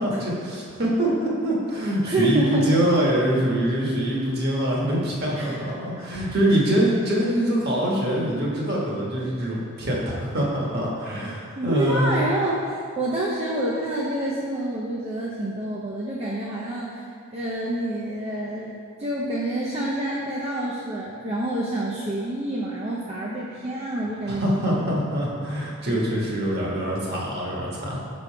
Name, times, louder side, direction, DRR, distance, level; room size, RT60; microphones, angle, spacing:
voice 1, 0.0-12.1 24.3-28.0, right 1 dB, 45° right, -4 dB, 1.3 m, -24 dB
voice 2, 2.0-2.8 5.4-5.5 6.0-6.1 11.2-18.7 19.0-25.0, right 1 dB, 30° right, -6 dB, 0.6 m, -28 dB
6.0 x 5.3 x 4.5 m, 2.3 s
head